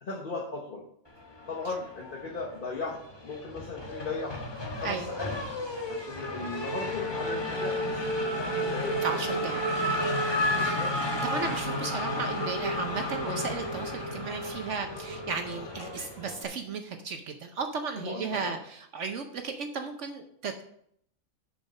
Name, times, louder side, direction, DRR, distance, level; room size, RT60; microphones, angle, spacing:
voice 1, 0.0-0.8 1.5-4.4 4.7-5.3 5.9-8.0 8.4-9.5 10.6-10.9 13.2-13.4 18.0-18.6, left 3 dB, 40° left, -1 dB, 1.2 m, -37 dB
Race car auto racing / Accelerating revving vroom, 1.4-2.4 2.8-16.4, left 1 dB, 20° left, 1.1 m, -32 dB
voice 2, 9.0-10.0 10.5-10.7 11.2-20.6, right 5 dB, 65° right, 6 dB, 1.0 m, -35 dB
6.8 x 6.4 x 5.3 m, 0.69 s
omnidirectional pair, 1.4 m